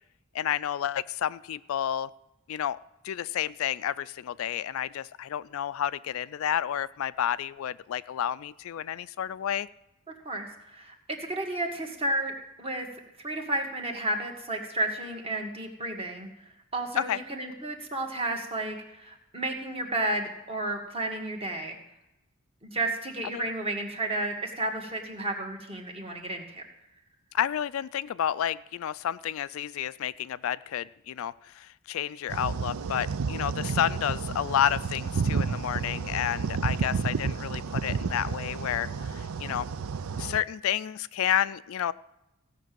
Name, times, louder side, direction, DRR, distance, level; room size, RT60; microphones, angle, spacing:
voice 1, 0.3-2.1 2.5-2.8 3.0-9.7 17.1-17.2 23.3-23.4 27.3-39.7 40.2-41.9, left 10 dB, 70° left, 16 dB, 0.3 m, -30 dB
voice 2, 10.2-12.3 12.6-12.9 13.2-16.3 16.7-21.7 22.6-26.6, right 2 dB, 25° right, 2 dB, 1.7 m, -32 dB
sound 1, 32.3-40.4, right 5 dB, 85° right, 0.5 m, -31 dB
16.0 x 6.0 x 7.6 m, 0.92 s
head